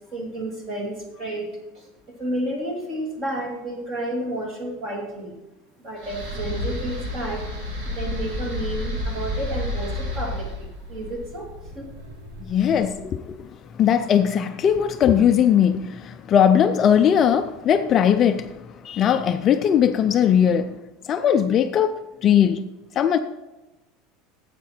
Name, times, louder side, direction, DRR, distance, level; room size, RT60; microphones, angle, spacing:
voice 1, 0.1-1.5 1.7-5.4 5.8-7.5 7.8-11.5 11.7-11.9, right 1 dB, 30° right, 2.4 m, -31 dB
sound 1, 6.0-13.2, left 1 dB, 55° right, 3.2 m, -31 dB
voice 2, 12.5-13.5 13.8-18.5 18.8-20.7 21.1-22.6 23.0-23.2, left 8 dB, 25° left, 0.3 m, -19 dB
12.5 x 8.2 x 4.3 m
supercardioid pair, 180°, 0 cm